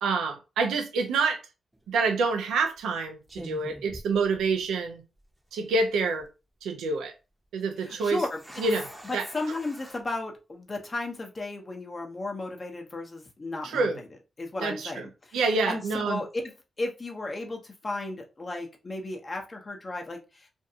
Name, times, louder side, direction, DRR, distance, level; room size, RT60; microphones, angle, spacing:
voice 1, 0.0-1.4 1.9-5.0 5.5-6.3 6.6-7.1 7.5-8.2 8.6-9.3 13.6-14.0 14.6-15.1 15.3-16.2, right 4 dB, 90° right, 0.5 m, -27 dB
sound 1, 1.7-2.0 2.8-3.0 3.3-4.9 5.2-5.3 5.9-6.3 8.0-10.0, equal, 15° right, 0.8 m, -45 dB
voice 2, 7.8-8.4 9.0-13.9 14.4-15.4 15.7-20.5, left 2 dB, 40° left, 0.8 m, -34 dB
2.6 x 2.2 x 2.7 m
supercardioid pair, 55°, 0 cm